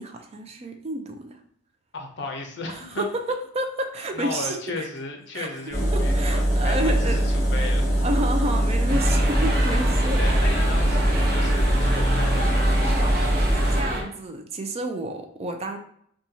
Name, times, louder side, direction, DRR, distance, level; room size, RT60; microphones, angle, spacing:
voice 1, 0.0-1.4 2.7-4.9 5.3-5.5 5.8-7.5 8.0-10.2 13.6-15.8, right 1 dB, 30° right, 5 dB, 0.4 m, -30 dB
voice 2, 1.9-3.1 4.1-8.0 10.2-13.3, left 2 dB, 60° left, 2 dB, 0.7 m, -35 dB
sound 1, 5.7-13.8, right 1 dB, 35° left, 1.0 m, -22 dB
sound 2, 8.9-14.0, equal, 55° right, 0.8 m, -26 dB
4.1 x 2.3 x 2.7 m, 0.66 s
head